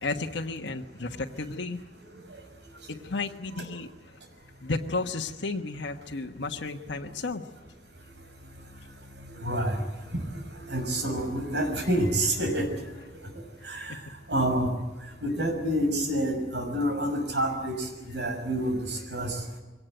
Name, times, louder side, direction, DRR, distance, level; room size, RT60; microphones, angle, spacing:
voice 1, 0.0-1.8 2.9-3.9 4.6-7.5 13.7-14.0, left 3 dB, 85° left, 2 dB, 1.3 m, -33 dB
voice 2, 9.4-9.8 10.7-12.6 13.7-13.9 14.3-14.7 15.2-17.9 18.1-19.4, right 1 dB, 75° right, 4 dB, 6.1 m, -27 dB
23.0 x 18.5 x 9.2 m, 1.2 s
head